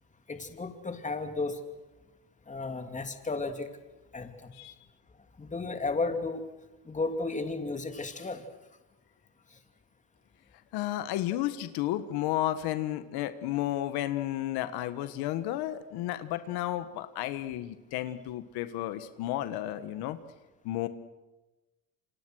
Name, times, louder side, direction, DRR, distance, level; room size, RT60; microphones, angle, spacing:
voice 1, 0.3-1.6 2.5-3.7 4.1-4.5 5.4-6.4 6.9-8.4, left 3 dB, 20° left, 6 dB, 2.9 m, -33 dB
voice 2, 10.7-20.2 20.6-20.9, left 14 dB, 85° left, 11 dB, 1.5 m, -32 dB
28.5 x 26.0 x 6.4 m, 1.1 s
cardioid pair, 115°, 37 cm